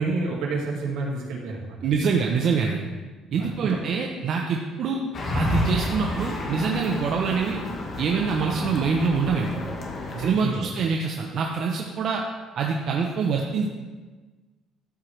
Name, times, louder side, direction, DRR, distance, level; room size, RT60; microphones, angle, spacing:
voice 1, 0.0-1.8 3.4-3.9 10.1-10.7, right 3 dB, 80° right, -2 dB, 1.9 m, -29 dB
voice 2, 1.8-2.9 3.3-5.0 5.3-7.6 8.0-9.6 10.2-12.2 12.6-13.7, right 5 dB, 55° right, 1 dB, 0.7 m, -25 dB
sound 1, 5.1-10.3, left 1 dB, 40° left, 1.4 m, -30 dB
12.5 x 4.6 x 3.3 m, 1.3 s
cardioid pair, 115°, 0 cm